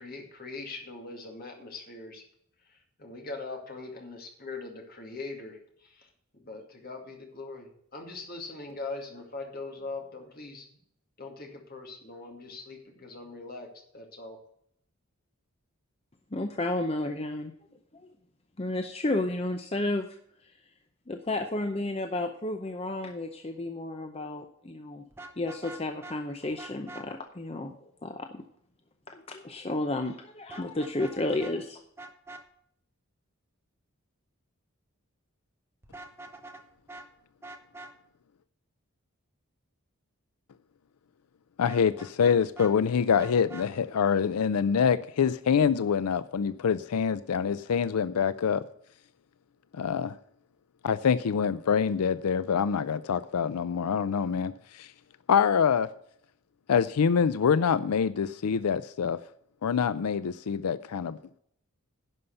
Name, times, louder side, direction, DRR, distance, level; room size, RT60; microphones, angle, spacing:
voice 1, 0.0-2.2 2.7-10.7 11.2-13.7 13.9-14.4, left 3 dB, 40° left, 2.3 m, -41 dB
voice 2, 16.3-17.5 18.6-20.1 20.4-20.5 21.1-25.0 25.4-28.4 29.1-31.8, left 2 dB, 25° left, 0.6 m, -32 dB
Vehicle horn car horn honking, 25.1-26.2 26.6-27.0 30.5-31.1 31.4-31.5 32.0-32.4 35.8-36.6 36.9-37.1 37.4-37.9 41.7-42.7 43.2-43.7, right 2 dB, 10° right, 0.9 m, -44 dB
voice 3, 41.6-48.6 49.7-50.2 50.8-54.9 55.3-55.9 56.7-59.2 59.6-61.2, left 7 dB, 90° left, 0.4 m, -25 dB
11.0 x 5.6 x 7.9 m
head